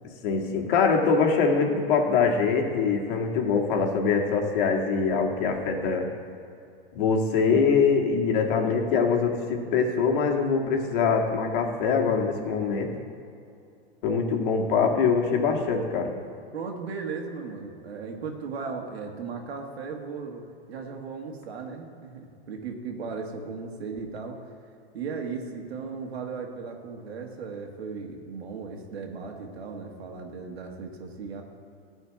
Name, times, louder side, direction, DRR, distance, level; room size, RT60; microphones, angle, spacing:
voice 1, 0.2-6.1 6.9-12.9 14.0-16.1, left 5 dB, 55° left, 2 dB, 1.9 m, -23 dB
voice 2, 16.5-24.4 24.9-31.4, right 5 dB, 80° right, 2 dB, 1.7 m, -36 dB
13.0 x 4.5 x 8.6 m, 2.5 s
hypercardioid pair, 125°, 31 cm